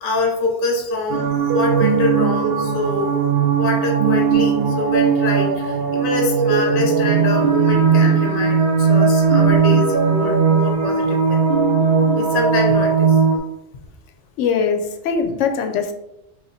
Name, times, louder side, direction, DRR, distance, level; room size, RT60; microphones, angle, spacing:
voice 1, 0.0-3.2 3.6-11.4 12.1-13.2, left 2 dB, 50° left, 1 dB, 0.9 m, -25 dB
sound 1, 1.1-13.4, right 5 dB, 60° right, 0.7 m, -17 dB
voice 2, 14.4-15.9, left 6 dB, 75° left, 6 dB, 0.9 m, -21 dB
3.1 x 2.7 x 4.0 m, 0.88 s
omnidirectional pair, 1.3 m